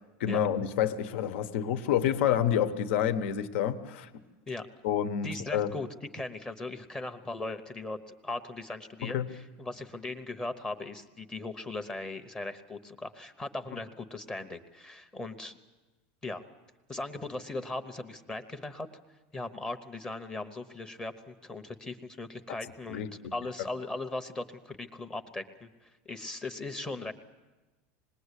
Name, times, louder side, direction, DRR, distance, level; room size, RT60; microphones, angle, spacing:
voice 1, 0.2-4.1 4.8-5.7 9.0-9.3 22.9-23.3, left 9 dB, 70° left, 10 dB, 1.2 m, -28 dB
voice 2, 5.2-5.9 6.1-8.0 8.2-15.6 16.2-16.4 16.9-18.9 19.3-27.1, left 2 dB, 10° left, 7 dB, 0.9 m, -38 dB
26.0 x 20.5 x 8.3 m, 1.2 s
supercardioid pair, 175°, 7 cm